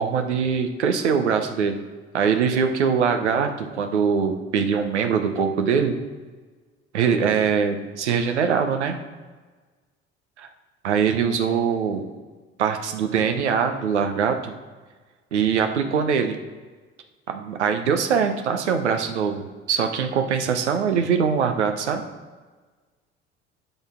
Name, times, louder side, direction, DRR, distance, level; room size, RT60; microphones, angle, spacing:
voice 1, 0.0-1.8 2.1-6.0 6.9-9.0 10.8-12.0 12.6-14.5 15.3-16.4 17.3-22.0, right 6 dB, 85° right, 6 dB, 0.8 m, -22 dB
12.0 x 4.0 x 3.6 m, 1.4 s
figure-of-eight pair, 60°, 34 cm